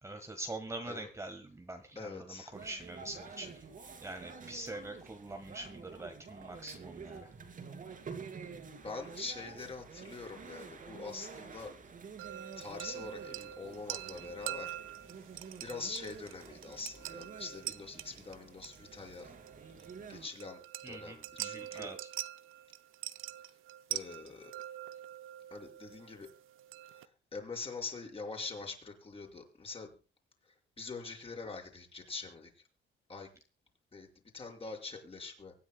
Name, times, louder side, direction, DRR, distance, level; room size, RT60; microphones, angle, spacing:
voice 1, 0.0-3.6 4.0-7.3 20.8-22.1, right 2 dB, 15° right, 5 dB, 1.4 m, -44 dB
voice 2, 1.9-2.5 8.8-11.7 12.6-14.7 15.0-15.1 15.6-19.3 19.7-20.6 20.9-21.9 23.9-24.5 25.5-26.3 26.9-29.9 30.5-32.5 33.1-33.3 33.9-34.1 34.3-35.5, left 4 dB, 30° left, 1 dB, 4.9 m, -44 dB
sound 1, 2.5-20.3, right 5 dB, 40° right, 2.7 m, -49 dB
sound 2, 12.2-27.1, right 13 dB, 80° right, 0.7 m, -45 dB
24.0 x 9.8 x 2.2 m, 0.34 s
cardioid pair, 115°, 20 cm